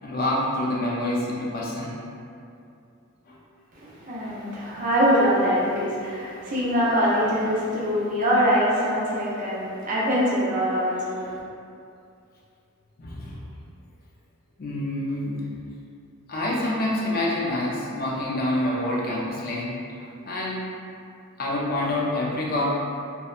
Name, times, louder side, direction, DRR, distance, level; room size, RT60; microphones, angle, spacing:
voice 1, 0.0-2.0 3.3-3.4 13.0-13.4 14.6-15.4 16.3-20.6 21.4-22.7, left 1 dB, 40° left, -4 dB, 0.4 m, -27 dB
voice 2, 3.7-11.3, equal, 35° right, -7 dB, 0.6 m, -23 dB
2.8 x 2.1 x 2.4 m, 2.6 s
head